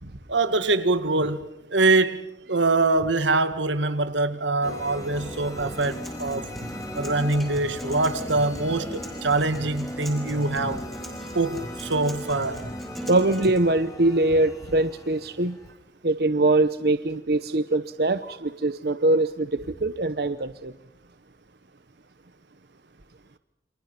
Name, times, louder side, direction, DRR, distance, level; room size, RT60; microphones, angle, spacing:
voice 1, 0.0-6.5 6.9-10.9 11.3-12.7, right 2 dB, 85° right, 2.0 m, -24 dB
sound 1, 4.6-15.7, left 1 dB, 20° left, 3.5 m, -39 dB
Acoustic guitar, 5.6-13.6, equal, ahead, 5.0 m, -38 dB
voice 2, 13.1-15.6 16.0-20.7, right 2 dB, 55° right, 0.8 m, -23 dB
29.0 x 25.5 x 5.8 m
head